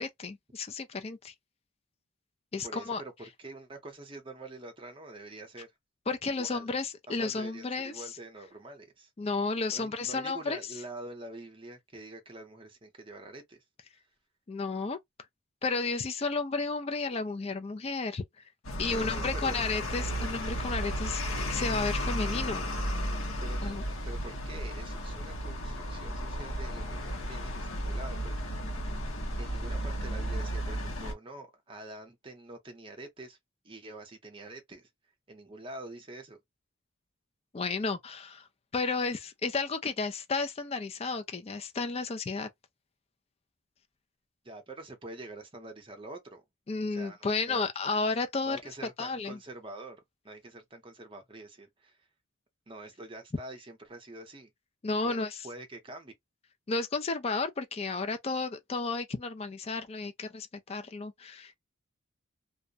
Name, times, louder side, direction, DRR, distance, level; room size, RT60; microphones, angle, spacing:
voice 1, 0.0-1.3 2.5-3.0 6.1-8.0 9.2-10.6 14.5-15.0 15.6-18.2 18.8-22.7 23.6-23.8 37.5-38.5 38.7-42.5 46.7-48.6 49.0-49.4 54.8-55.4 56.7-61.5, left 4 dB, 30° left, 0.4 m, -32 dB
voice 2, 2.6-5.7 6.3-6.7 7.1-9.1 9.7-13.6 18.9-19.6 23.4-28.9 29.4-33.4 33.6-34.9 35.3-36.4 44.4-46.4 46.9-47.7 48.4-52.1 52.7-54.5 55.0-56.1, right 2 dB, 25° right, 0.7 m, -46 dB
sound 1, 18.6-31.1, equal, 80° left, 0.9 m, -34 dB
2.3 x 2.1 x 2.6 m
head